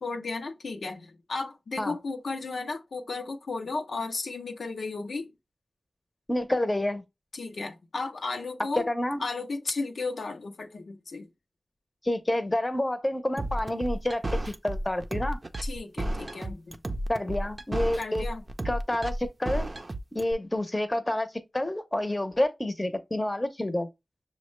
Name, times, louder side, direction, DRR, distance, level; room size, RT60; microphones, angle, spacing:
voice 1, 0.0-5.3 7.3-8.9 9.2-11.3 15.6-16.8 18.0-18.4, left 3 dB, 85° left, 0.5 m, -34 dB
voice 2, 6.3-7.0 8.7-9.2 12.0-15.4 17.1-18.3 18.6-19.7 20.1-21.3 21.5-23.9, left 1 dB, 25° left, 0.7 m, -28 dB
sound 1, 13.4-20.3, right 1 dB, 45° right, 0.5 m, -32 dB
6.1 x 2.2 x 3.1 m
cardioid pair, 45°, 0 cm